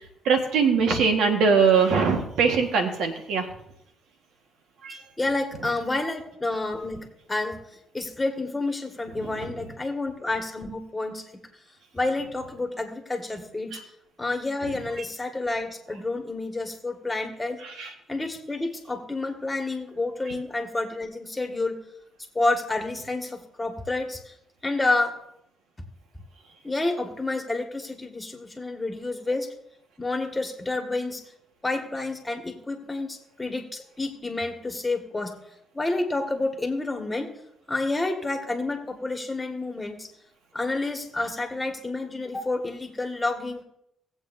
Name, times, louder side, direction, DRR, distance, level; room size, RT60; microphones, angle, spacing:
voice 1, 0.2-3.4 4.8-5.0 17.8-17.9, right 5 dB, 85° right, 4 dB, 1.4 m, -21 dB
voice 2, 4.9-7.6 7.9-11.4 11.9-13.8 14.2-17.6 18.1-21.8 22.3-24.3 24.6-25.1 26.6-29.5 30.0-31.2 31.6-35.4 35.7-37.3 37.7-40.1 40.5-43.6, left 2 dB, 15° left, 3 dB, 1.7 m, -29 dB
18.5 x 8.0 x 2.6 m, 0.78 s
cardioid pair, 90°, 0 cm